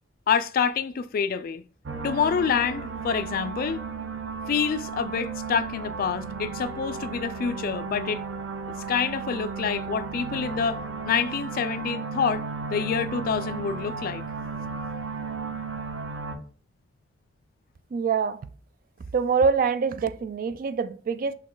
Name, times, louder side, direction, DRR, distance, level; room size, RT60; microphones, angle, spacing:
voice 1, 0.3-1.6 2.0-3.8 4.5-8.2 8.9-14.3 14.6-14.8, left 6 dB, 50° left, 0.3 m, -27 dB
sound 1, 1.8-16.4, right 4 dB, 90° right, 0.7 m, -34 dB
voice 2, 17.9-18.4 19.1-21.3, right 5 dB, 50° right, 0.3 m, -25 dB
6.1 x 2.2 x 3.8 m
head